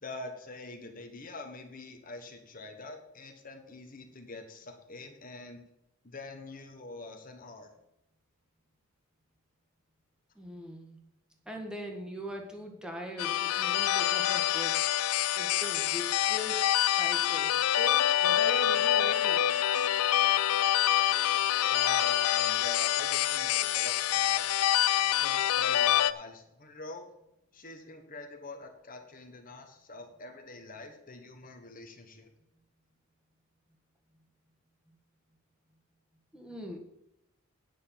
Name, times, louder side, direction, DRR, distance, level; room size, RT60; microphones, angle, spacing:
voice 1, 0.0-5.6 6.0-7.7 21.7-24.6 25.1-27.1 27.5-32.3, left 2 dB, 40° left, 5 dB, 1.3 m, -45 dB
voice 2, 10.3-11.0 11.4-14.8 15.3-19.5 36.3-36.8, equal, 5° right, 1 dB, 1.7 m, -41 dB
sound 1, 13.2-26.1, left 12 dB, 90° left, 0.5 m, -26 dB
9.5 x 6.5 x 7.3 m, 0.83 s
head